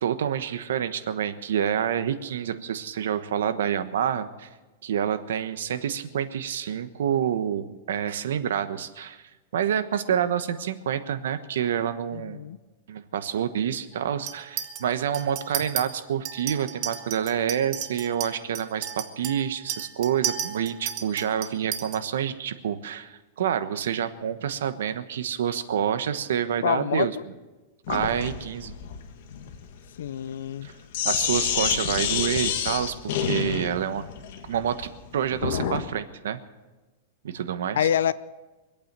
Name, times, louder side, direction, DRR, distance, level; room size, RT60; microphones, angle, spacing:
voice 1, 0.0-4.5 4.8-9.2 9.5-12.4 12.9-27.1 27.9-28.7 30.6-30.7 31.0-34.0 34.5-36.4 37.2-37.9, right 9 dB, 80° right, 11 dB, 1.2 m, -28 dB
voice 2, 12.1-12.6 26.6-27.2 30.0-30.7 37.7-38.1, left 9 dB, 85° left, 18 dB, 0.6 m, -26 dB
Chink clink, 14.3-14.8 15.1-15.8 16.3-22.0, right 9 dB, 30° right, 1.2 m, -33 dB
Sink (filling or washing), 27.9-35.9, left 8 dB, 50° left, 1.6 m, -29 dB
24.0 x 8.8 x 6.8 m, 1.2 s
supercardioid pair, 170°, 0 cm